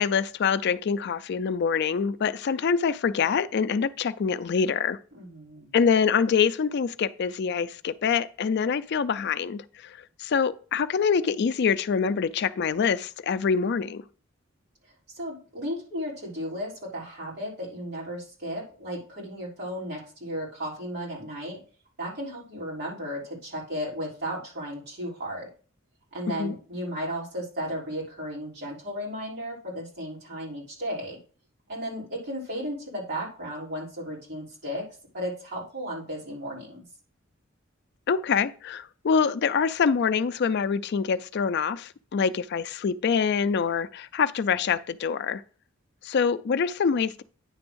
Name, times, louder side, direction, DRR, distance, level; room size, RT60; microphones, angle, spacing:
voice 1, 0.0-5.0 5.7-14.0 26.4-26.5 38.1-45.4 46.0-47.2, left 6 dB, 55° left, 0.4 m, -25 dB
voice 2, 5.1-5.7 15.1-21.6 22.0-25.5 26.1-31.2 31.7-34.8 35.1-36.8, equal, 55° right, 3.6 m, -34 dB
9.7 x 3.5 x 6.2 m
head